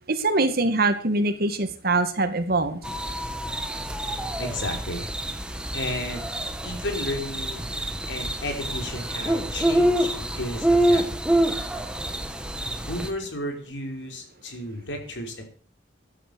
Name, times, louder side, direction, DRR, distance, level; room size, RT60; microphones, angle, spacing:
voice 1, 0.1-2.8, right 2 dB, 55° right, 9 dB, 2.2 m, -23 dB
sound 1, 2.8-13.1, right 1 dB, 5° right, 1.7 m, -26 dB
voice 2, 4.4-5.1 5.7-6.3 6.6-7.7 8.1-11.2 12.8-15.4, left 1 dB, 70° left, 4 dB, 4.9 m, -33 dB
14.5 x 11.5 x 7.1 m, 0.43 s
head